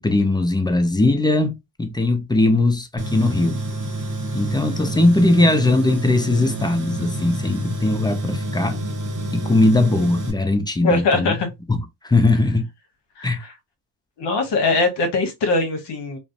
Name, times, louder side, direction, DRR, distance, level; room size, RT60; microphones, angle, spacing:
voice 1, 0.0-3.6 4.3-8.8 9.3-11.4 11.7-11.8 12.0-12.7 13.2-13.4, left 2 dB, 10° left, 0.3 m, -19 dB
Tools, 3.0-10.3, right 1 dB, 40° right, 0.9 m, -28 dB
voice 2, 10.8-11.5 13.2-13.5 14.2-16.2, left 3 dB, 60° left, 0.9 m, -21 dB
2.5 x 2.0 x 2.5 m
supercardioid pair, 80°, 48 cm